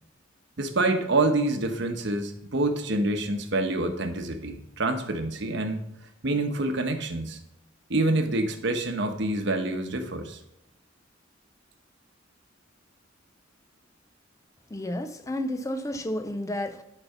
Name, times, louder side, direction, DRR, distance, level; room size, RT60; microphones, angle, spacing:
voice 1, 0.6-5.9 6.2-7.4 7.9-10.4, right 2 dB, 65° right, 6 dB, 1.0 m, -27 dB
voice 2, 14.7-16.8, left 1 dB, 15° left, 9 dB, 0.5 m, -31 dB
11.0 x 4.2 x 5.6 m, 0.81 s
head